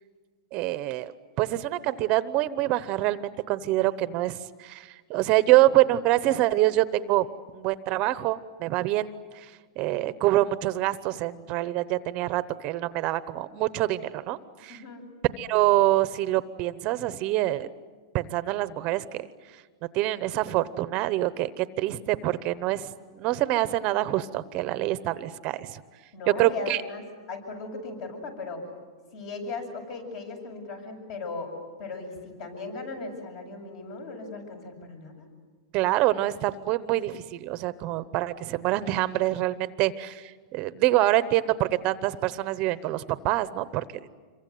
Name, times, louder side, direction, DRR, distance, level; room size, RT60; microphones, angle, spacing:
voice 1, 0.5-1.1 1.4-7.3 7.5-9.5 9.8-14.8 15.4-17.7 18.1-19.3 19.9-25.8 26.4-26.8 35.7-43.8, right 15 dB, 35° right, 14 dB, 0.9 m, -26 dB
voice 2, 14.7-15.0 26.1-27.0 27.3-28.7 29.1-31.5 31.8-35.3, left 3 dB, 50° left, 4 dB, 7.9 m, -37 dB
26.5 x 23.5 x 9.3 m, 1.5 s
supercardioid pair, 150°, 3 cm